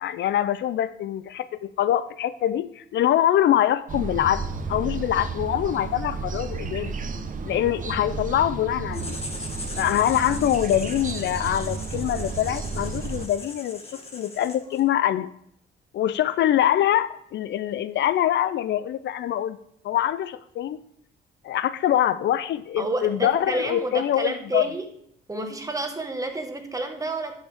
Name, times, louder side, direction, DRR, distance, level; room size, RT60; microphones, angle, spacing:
voice 1, 0.0-4.4 4.7-6.9 7.4-9.2 9.7-15.3 15.9-19.6 19.8-20.8 21.4-24.7, left 11 dB, 65° left, 15 dB, 0.4 m, -24 dB
sound 1, 3.9-13.3, right 4 dB, 40° right, 0.9 m, -32 dB
Writing, 8.9-14.9, left 2 dB, 30° left, 1.6 m, -39 dB
voice 2, 22.8-24.9 25.3-27.4, right 2 dB, 15° right, 5 dB, 1.4 m, -29 dB
12.0 x 5.5 x 3.5 m, 0.71 s
cardioid pair, 90°, 20 cm